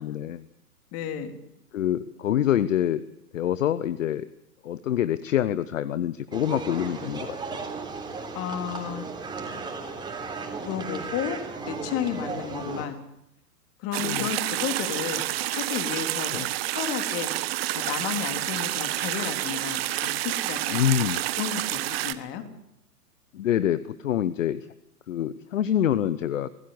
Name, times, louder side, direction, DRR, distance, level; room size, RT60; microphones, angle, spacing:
voice 1, 0.0-0.5 1.7-3.0 3.3-4.3 4.6-7.4 12.6-12.8 14.0-14.3 16.3-16.5 20.7-21.2 23.3-24.7 25.1-26.5, left 11 dB, 50° left, 16 dB, 1.0 m, -26 dB
voice 2, 0.9-1.3 8.3-9.0 10.6-11.4 11.7-13.0 13.8-15.2 15.5-16.4 16.7-17.3 17.7-20.8 21.4-22.4, left 9 dB, 30° left, 7 dB, 3.2 m, -32 dB
sound 1, 6.3-12.9, right 4 dB, 10° right, 3.5 m, -35 dB
sound 2, 13.9-22.1, right 15 dB, 40° right, 1.4 m, -29 dB
26.5 x 17.0 x 8.0 m, 0.80 s
figure-of-eight pair, 115°, 48 cm